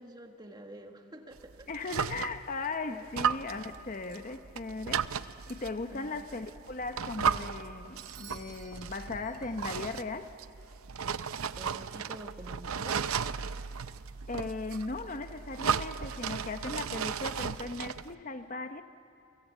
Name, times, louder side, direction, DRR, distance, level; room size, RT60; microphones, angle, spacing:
voice 1, 0.0-2.0 2.9-3.1 5.9-6.1 11.6-13.1, right 1 dB, 20° right, 1.8 m, -48 dB
sound 1, 1.4-2.6 3.1-18.1, right 7 dB, 85° right, 0.6 m, -35 dB
voice 2, 1.7-10.4 14.3-18.8, left 3 dB, 35° left, 0.8 m, -38 dB
Bell / Doorbell, 8.0-9.8, right 7 dB, 60° right, 5.4 m, -53 dB
29.5 x 24.5 x 8.3 m
head